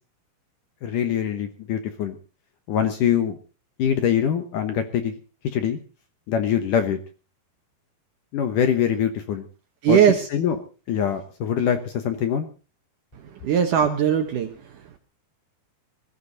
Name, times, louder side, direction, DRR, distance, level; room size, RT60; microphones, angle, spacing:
voice 1, 0.8-2.2 2.7-3.4 3.8-5.2 5.4-5.8 6.3-7.0 8.3-9.5 9.9-10.0 10.3-10.6 10.9-12.5, left 8 dB, 65° left, 8 dB, 2.2 m, -23 dB
voice 2, 9.8-10.3 13.4-14.5, right 9 dB, 70° right, 7 dB, 2.1 m, -19 dB
20.5 x 15.0 x 4.0 m, 0.36 s
omnidirectional pair, 4.9 m